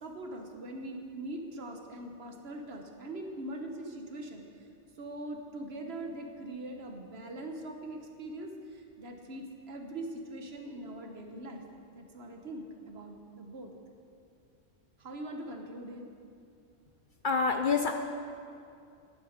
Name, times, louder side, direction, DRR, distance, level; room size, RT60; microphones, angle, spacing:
voice 1, 0.0-4.4 5.0-11.6 11.9-13.7 15.0-16.1, right 1 dB, 60° right, 3 dB, 1.3 m, -42 dB
voice 2, 17.2-17.9, left 5 dB, 55° left, 5 dB, 0.6 m, -26 dB
11.0 x 10.5 x 5.2 m, 2.5 s
omnidirectional pair, 1.3 m